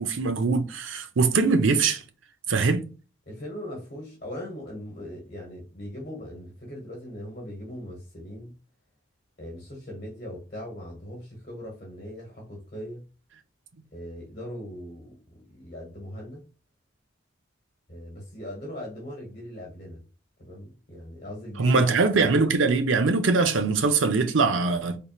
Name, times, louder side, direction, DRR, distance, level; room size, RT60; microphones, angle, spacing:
voice 1, 0.0-2.0 2.5-2.8 21.6-25.0, right 4 dB, 75° right, 0.6 m, -22 dB
voice 2, 3.3-8.5 9.4-13.0 13.9-16.5 17.9-20.0 20.4-22.3, equal, 40° left, 1.2 m, -40 dB
4.3 x 3.5 x 2.4 m
head